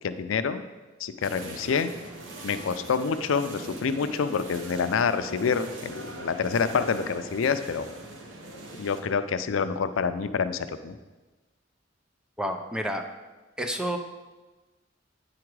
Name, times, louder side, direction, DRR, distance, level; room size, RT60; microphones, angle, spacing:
voice 1, 0.0-0.6 1.0-1.9 2.4-7.8 8.8-11.0, left 5 dB, 85° left, 11 dB, 0.4 m, -27 dB
sound 1, 1.2-9.0, right 2 dB, 70° right, 1.0 m, -41 dB
voice 2, 12.4-13.0 13.6-14.0, equal, 5° right, 5 dB, 0.5 m, -29 dB
8.6 x 4.9 x 4.7 m, 1.2 s
head